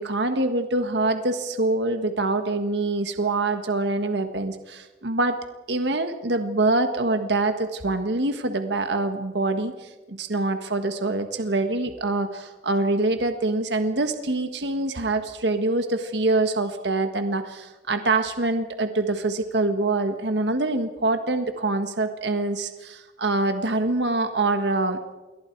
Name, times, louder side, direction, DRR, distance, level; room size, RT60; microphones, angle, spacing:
voice 1, 0.0-5.4 5.7-25.0, right 2 dB, 75° right, 7 dB, 1.5 m, -25 dB
27.5 x 23.0 x 4.7 m, 1.2 s
head